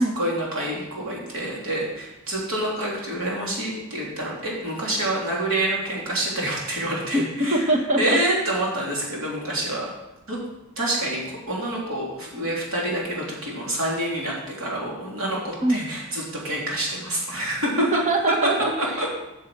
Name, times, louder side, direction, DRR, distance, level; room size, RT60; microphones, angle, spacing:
voice 1, 0.0-7.7 8.0-9.9 10.3-10.4 10.8-17.8 18.8-19.1, right 1 dB, 75° right, -4 dB, 3.2 m, -27 dB
voice 2, 7.5-8.2 15.6-15.8 17.8-18.7, right 1 dB, 35° right, 2 dB, 1.3 m, -21 dB
8.5 x 6.7 x 6.1 m, 0.97 s
head